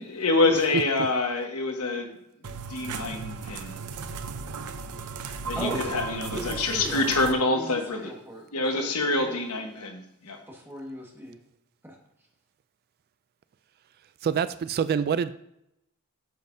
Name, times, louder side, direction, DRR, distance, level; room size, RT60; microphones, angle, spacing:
voice 1, 0.1-2.1 2.7-3.8 5.4-8.1 8.5-10.4, left 2 dB, 80° left, 4 dB, 1.3 m, -26 dB
voice 2, 0.7-1.1 14.2-15.3, right 7 dB, 45° right, 14 dB, 0.3 m, -26 dB
sound 1, 2.4-7.3, right 5 dB, 85° right, 0.7 m, -36 dB
voice 3, 5.5-5.9 6.3-7.1 7.5-9.4 10.5-11.4 11.8-12.0, right 1 dB, 10° right, -1 dB, 1.6 m, -38 dB
9.1 x 7.2 x 2.7 m, 0.80 s
head